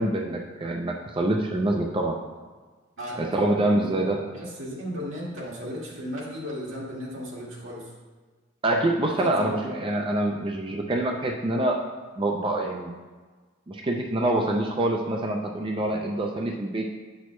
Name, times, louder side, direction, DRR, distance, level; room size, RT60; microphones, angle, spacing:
voice 1, 0.0-2.2 3.2-4.2 8.6-11.8 12.2-12.9 13.7-16.8, right 1 dB, 25° right, 1 dB, 0.5 m, -25 dB
voice 2, 3.0-7.9 9.2-9.5, equal, 85° right, -4 dB, 1.9 m, -36 dB
8.1 x 6.2 x 3.1 m, 1.4 s
head